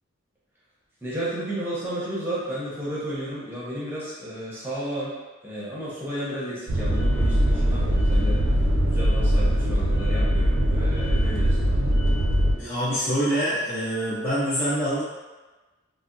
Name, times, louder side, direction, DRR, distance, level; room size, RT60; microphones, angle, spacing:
voice 1, 1.0-5.1 5.4-8.4 8.9-11.8, right 1 dB, 10° right, -8 dB, 0.8 m, -33 dB
sound 1, 6.7-12.5, equal, 80° right, 0.6 m, -21 dB
voice 2, 12.6-15.0, equal, 30° left, -13 dB, 0.7 m, -25 dB
3.3 x 2.2 x 2.6 m, 1.2 s
head